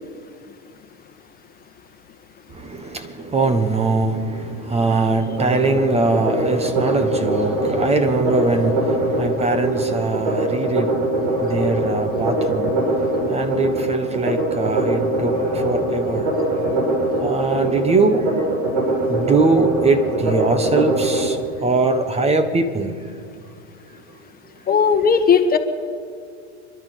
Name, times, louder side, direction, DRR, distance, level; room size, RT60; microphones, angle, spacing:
voice 1, 2.5-12.9 13.3-16.4 17.2-18.5 19.1-22.9, right 3 dB, 15° right, 10 dB, 1.4 m, -22 dB
sound 1, 5.3-21.3, right 2 dB, 75° right, 7.2 m, -22 dB
voice 2, 24.7-25.6, left 6 dB, 25° left, 7 dB, 1.5 m, -16 dB
27.5 x 12.0 x 8.3 m, 2.3 s
hypercardioid pair, 110°, 35 cm